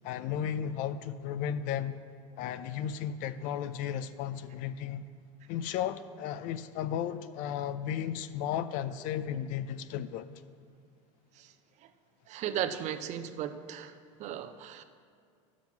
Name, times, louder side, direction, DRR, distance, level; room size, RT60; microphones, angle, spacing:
voice 1, 0.0-2.0 2.4-5.0 5.5-10.3, left 9 dB, 55° left, 0.5 m, -34 dB
voice 2, 12.3-14.8, right 10 dB, 45° right, 0.7 m, -36 dB
11.5 x 6.2 x 5.8 m
hypercardioid pair, 100°, 17 cm